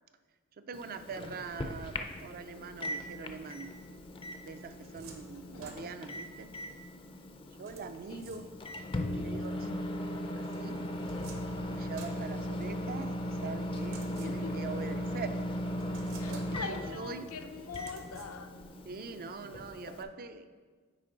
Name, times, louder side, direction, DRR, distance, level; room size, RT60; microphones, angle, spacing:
voice 1, 0.6-3.7 4.4-6.5 7.6-8.5 9.1-9.7 10.4-10.8 11.7-15.4 16.3-17.3 18.8-20.5, right 4 dB, 45° right, 10 dB, 0.4 m, -43 dB
Microwave oven, 0.7-20.0, left 1 dB, 25° left, 0.4 m, -38 dB
sound 1, 4.3-6.3 7.7-8.9 10.5-13.0 13.7-14.7 15.2-15.3 15.8-16.9 17.7-18.7, right 3 dB, 65° right, 1.0 m, -52 dB
voice 2, 5.3-5.8 8.1-8.2 14.2-14.5 16.2-18.5, left 5 dB, 70° left, 7 dB, 0.6 m, -43 dB
9.8 x 4.4 x 3.9 m, 1.5 s
head